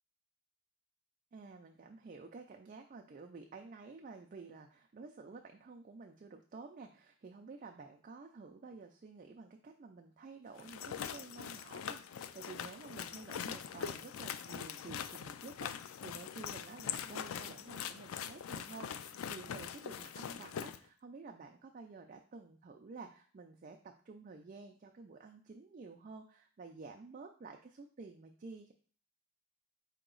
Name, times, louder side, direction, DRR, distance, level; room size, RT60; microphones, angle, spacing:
voice 1, 1.3-28.7, right 4 dB, 40° right, 4 dB, 0.3 m, -51 dB
sound 1, 10.6-20.8, left 8 dB, 80° left, 0.3 m, -43 dB
4.8 x 2.9 x 3.8 m, 0.43 s
head